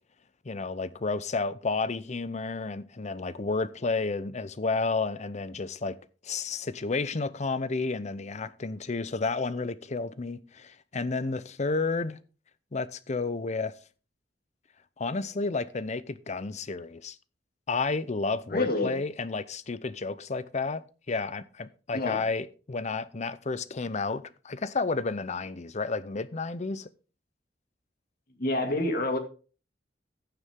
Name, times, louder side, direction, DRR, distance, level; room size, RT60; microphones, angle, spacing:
voice 1, 0.4-6.0 6.2-12.2 12.7-13.7 15.0-17.2 17.7-26.9, left 3 dB, 40° left, 0.7 m, -31 dB
voice 2, 18.5-19.0 21.9-22.2 28.4-29.2, left 2 dB, 55° left, 2.3 m, -27 dB
15.0 x 6.9 x 3.6 m
head